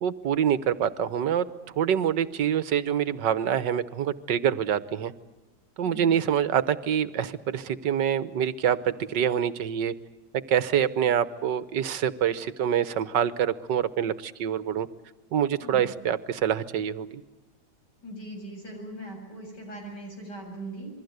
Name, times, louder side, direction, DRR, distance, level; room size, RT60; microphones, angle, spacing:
voice 1, 0.0-5.1 5.8-9.9 10.3-14.9 15.3-17.2, right 9 dB, 75° right, 15 dB, 1.7 m, -26 dB
voice 2, 18.0-20.9, right 1 dB, 65° left, 1 dB, 8.7 m, -40 dB
27.5 x 22.5 x 8.1 m, 1.1 s
omnidirectional pair, 1.9 m